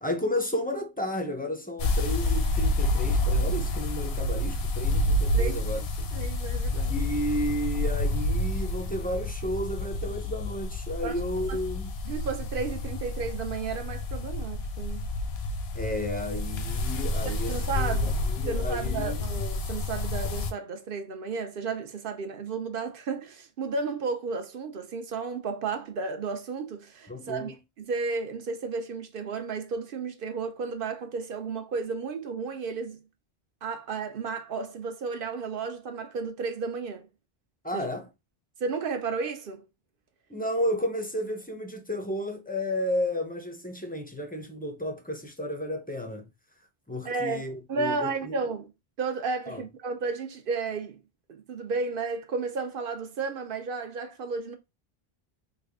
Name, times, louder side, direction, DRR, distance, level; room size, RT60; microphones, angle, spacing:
voice 1, 0.0-5.8 6.9-11.9 15.7-19.3 27.1-27.6 37.6-38.1 40.3-46.3 46.9-48.4 49.5-49.6, left 1 dB, 15° left, 0.4 m, -32 dB
sound 1, 1.8-20.5, left 1 dB, 75° left, 0.9 m, -29 dB
voice 2, 6.1-6.9 11.0-11.2 11.5-11.6 12.1-15.1 17.2-18.1 18.5-33.0 33.6-37.1 37.7-37.9 38.6-39.7 47.0-48.7 49.0-51.0 51.3-54.6, right 4 dB, 65° right, 0.8 m, -33 dB
3.3 x 2.2 x 3.5 m
omnidirectional pair, 1.0 m